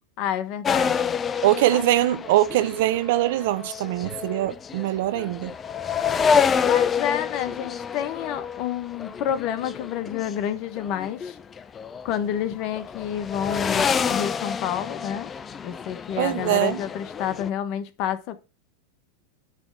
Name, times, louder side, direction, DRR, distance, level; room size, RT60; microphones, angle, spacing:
voice 1, 0.2-1.2 1.7-1.8 6.6-11.4 12.0-15.3 15.6-18.4, left 9 dB, 50° left, 1.2 m, -29 dB
sound 1, 0.6-10.4 10.8-12.4 12.7-17.5, left 6 dB, 25° left, 0.5 m, -28 dB
voice 2, 1.4-5.5 16.2-16.8, right 15 dB, 65° right, 0.6 m, -22 dB
9.6 x 3.4 x 6.5 m
hypercardioid pair, 115°, 0 cm